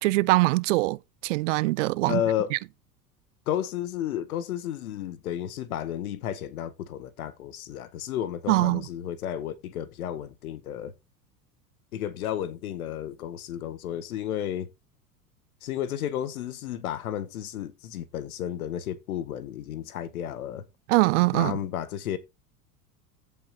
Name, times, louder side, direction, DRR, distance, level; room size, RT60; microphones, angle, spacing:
voice 1, 0.0-2.2 2.5-2.6 8.5-8.8 20.9-21.6, right 21 dB, 55° right, 0.5 m, -23 dB
voice 2, 2.1-2.5 3.5-10.9 11.9-14.7 15.6-20.6 21.3-22.2, left 10 dB, 65° left, 1.7 m, -32 dB
15.0 x 5.9 x 2.8 m
figure-of-eight pair, 85°, 46 cm